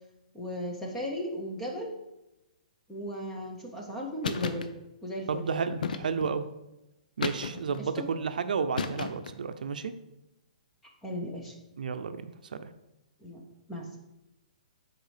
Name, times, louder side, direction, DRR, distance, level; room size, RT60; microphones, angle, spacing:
voice 1, 0.3-1.9 2.9-4.7 5.0-5.5 7.8-8.1 11.0-11.5 13.2-13.4 13.7-14.0, equal, 5° left, 0 dB, 0.7 m, -36 dB
sound 1, 4.2-4.7 5.8-6.4 7.2-7.8 8.8-9.4, left 5 dB, 90° left, 0.6 m, -33 dB
voice 2, 5.3-6.5 7.2-9.9 11.8-12.2 12.4-12.7, right 5 dB, 85° right, 10 dB, 0.5 m, -32 dB
6.6 x 4.4 x 4.9 m, 0.94 s
hypercardioid pair, 175°, 4 cm